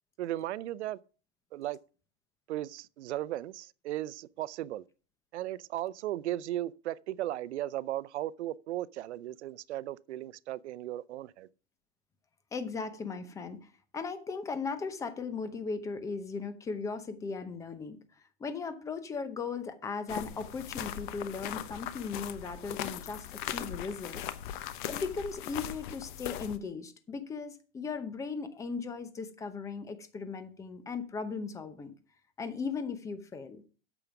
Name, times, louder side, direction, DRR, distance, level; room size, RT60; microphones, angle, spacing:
voice 1, 0.2-1.0 1.5-1.8 2.5-4.8 5.3-11.5, right 14 dB, 90° right, 0.6 m, -36 dB
voice 2, 12.5-18.0 18.4-24.2 24.9-31.9 32.4-33.6, left 5 dB, 10° left, 0.7 m, -37 dB
sound 1, 20.1-26.6, left 11 dB, 50° left, 0.9 m, -39 dB
8.8 x 7.1 x 5.9 m
supercardioid pair, 160°, 33 cm